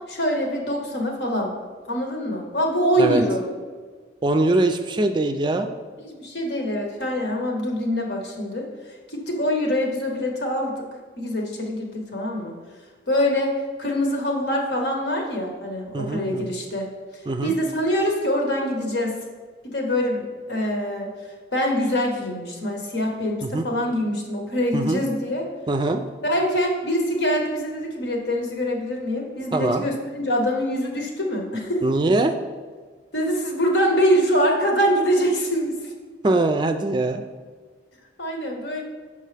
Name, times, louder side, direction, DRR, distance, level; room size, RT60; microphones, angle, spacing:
voice 1, 0.1-1.5 1.9-3.4 6.0-8.7 9.1-10.7 11.2-12.5 13.1-13.5 13.8-16.9 17.4-19.2 19.6-20.2 20.5-21.1 21.5-25.5 26.2-31.8 33.1-35.9 38.2-38.8, equal, 75° left, 1 dB, 1.2 m, -24 dB
voice 2, 4.2-5.7 15.9-16.4 17.3-17.5 23.4-23.6 24.7-25.0 25.7-26.0 29.5-29.8 31.8-32.3 36.2-37.2, right 2 dB, 25° right, 7 dB, 0.3 m, -22 dB
6.6 x 5.4 x 3.3 m, 1.5 s
head